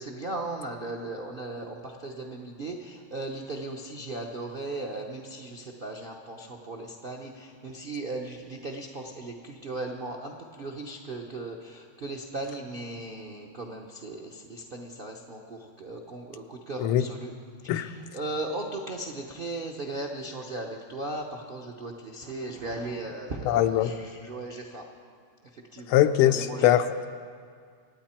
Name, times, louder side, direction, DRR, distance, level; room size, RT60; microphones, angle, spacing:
voice 1, 0.0-10.3 10.6-17.3 17.7-24.8 25.7-26.0 26.2-26.7, right 2 dB, 70° right, 1 dB, 0.5 m, -37 dB
voice 2, 23.4-23.9 25.9-27.1, left 12 dB, 90° left, 10 dB, 1.6 m, -22 dB
26.0 x 9.2 x 4.4 m, 2.1 s
omnidirectional pair, 2.3 m